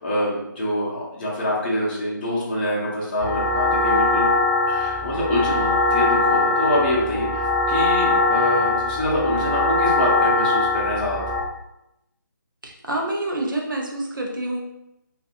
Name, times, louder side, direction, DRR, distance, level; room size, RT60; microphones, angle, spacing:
voice 1, 0.0-4.3 4.7-11.2, left 1 dB, 25° left, -6 dB, 0.6 m, -25 dB
sound 1, 3.2-11.4, left 3 dB, 30° right, 1.0 m, -21 dB
voice 2, 12.6-14.6, right 1 dB, 75° right, 0 dB, 0.7 m, -27 dB
2.6 x 2.4 x 2.3 m, 0.88 s
figure-of-eight pair, 150°, 11 cm